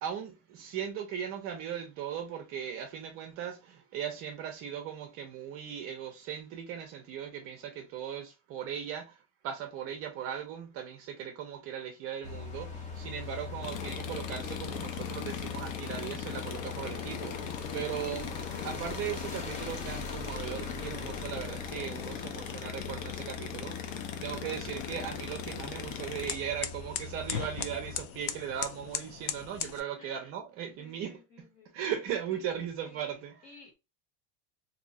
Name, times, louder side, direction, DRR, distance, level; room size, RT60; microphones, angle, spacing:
voice 1, 0.0-9.2 9.4-18.4 18.6-31.2 31.7-33.5, right 9 dB, 35° right, 0.6 m, -38 dB
sound 1, 12.2-28.0, left 3 dB, 20° left, 0.7 m, -42 dB
sound 2, 13.6-26.4, left 9 dB, 90° left, 0.7 m, -40 dB
sound 3, 23.0-29.8, left 9 dB, 55° left, 0.5 m, -40 dB
voice 2, 30.0-30.3 30.8-33.0 33.4-33.7, left 4 dB, 35° left, 1.3 m, -56 dB
2.7 x 2.3 x 4.0 m
supercardioid pair, 155°, 38 cm